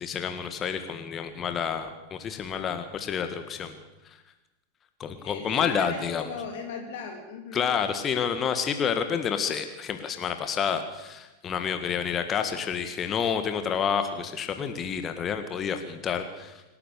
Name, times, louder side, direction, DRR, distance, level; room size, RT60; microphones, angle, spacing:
voice 1, 0.0-3.7 5.0-6.2 7.5-16.6, left 7 dB, 25° left, 8 dB, 1.8 m, -29 dB
voice 2, 5.2-7.7, left 5 dB, 55° left, 4 dB, 3.0 m, -38 dB
27.0 x 12.0 x 8.4 m, 1.1 s
figure-of-eight pair, 90°, 0 cm